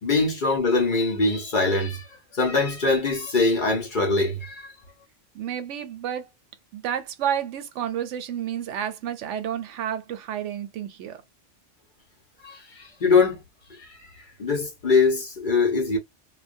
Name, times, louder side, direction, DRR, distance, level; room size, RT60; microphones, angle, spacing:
voice 1, 0.0-4.7 12.4-13.4 13.7-16.0, left 3 dB, 45° left, 0.9 m, -23 dB
voice 2, 5.3-6.3 6.7-11.2, right 9 dB, 80° right, 0.9 m, -30 dB
2.2 x 2.2 x 2.6 m
omnidirectional pair, 1.2 m